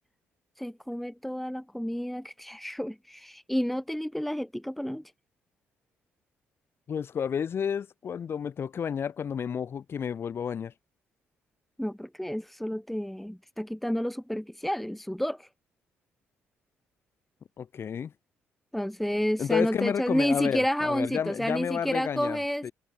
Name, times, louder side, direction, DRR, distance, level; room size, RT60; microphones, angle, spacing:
voice 1, 0.6-5.0 11.8-15.5 18.7-22.7, equal, 5° left, 2.3 m, -30 dB
voice 2, 6.9-10.7 17.6-18.1 19.4-22.7, left 7 dB, 55° left, 3.7 m, -31 dB
supercardioid pair, 70°, 5 cm